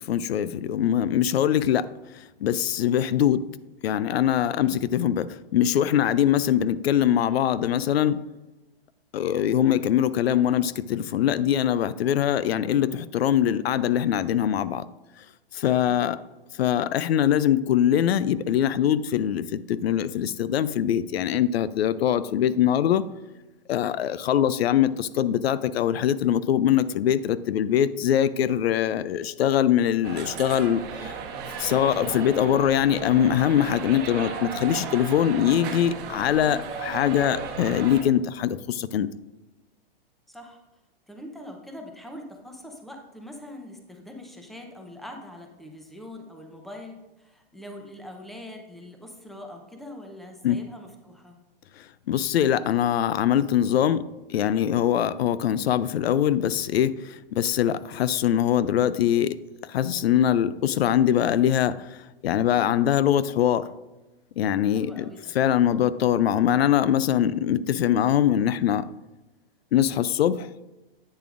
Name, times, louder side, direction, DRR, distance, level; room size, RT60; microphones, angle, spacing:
voice 1, 0.0-1.8 2.4-3.5 3.8-8.2 9.1-14.8 15.5-16.2 16.6-23.0 23.7-31.1 31.6-39.1 50.4-50.6 52.1-54.0 54.3-59.4 59.7-61.9 62.2-63.6 64.4-65.1 65.3-68.8 69.7-70.5, left 10 dB, 90° left, 16 dB, 0.5 m, -22 dB
sound 1, 30.0-38.0, right 5 dB, 35° right, 1.1 m, -35 dB
voice 2, 40.3-40.6 41.1-51.4 64.7-65.3, left 1 dB, ahead, 3 dB, 0.7 m, -43 dB
8.7 x 6.8 x 2.5 m, 1.1 s
hypercardioid pair, 135°, 30 cm